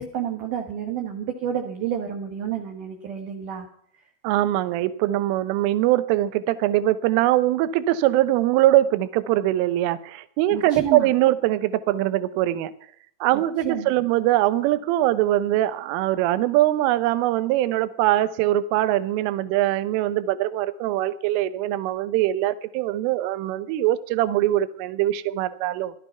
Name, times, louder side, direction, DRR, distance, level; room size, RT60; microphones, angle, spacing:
voice 1, 0.0-3.7 10.5-11.1 13.6-13.9, right 8 dB, 65° right, 3 dB, 2.1 m, -29 dB
voice 2, 4.2-12.7 13.2-25.9, right 14 dB, 80° right, 14 dB, 3.4 m, -22 dB
16.0 x 13.0 x 5.7 m, 0.63 s
omnidirectional pair, 5.8 m